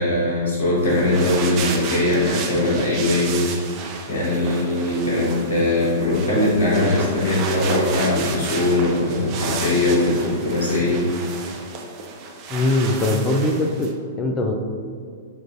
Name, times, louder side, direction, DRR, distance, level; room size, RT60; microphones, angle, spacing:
voice 1, 0.0-3.7 4.1-11.0, left 1 dB, 65° left, -5 dB, 1.1 m, -20 dB
sound 1, 0.8-13.9, right 5 dB, 40° right, 0.6 m, -32 dB
voice 2, 12.5-13.9 14.2-14.5, left 2 dB, 25° left, 2 dB, 0.4 m, -21 dB
6.5 x 2.5 x 2.5 m, 2.2 s
figure-of-eight pair, 105°, 0 cm